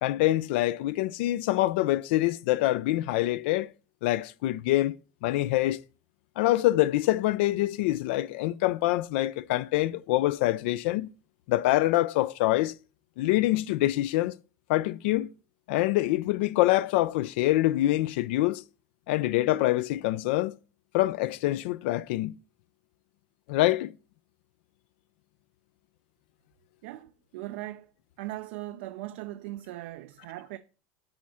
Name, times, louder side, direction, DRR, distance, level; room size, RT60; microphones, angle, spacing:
voice 1, 0.0-3.7 4.0-4.9 5.2-5.8 6.4-11.1 11.5-12.7 13.2-14.3 14.7-15.3 15.7-18.6 19.1-20.5 20.9-22.4 23.5-23.9, left 16 dB, 85° left, 0.4 m, -25 dB
voice 2, 26.8-27.9 28.2-30.6, right 16 dB, 85° right, 0.5 m, -39 dB
8.7 x 3.6 x 6.2 m
cardioid pair, 150°, 6 cm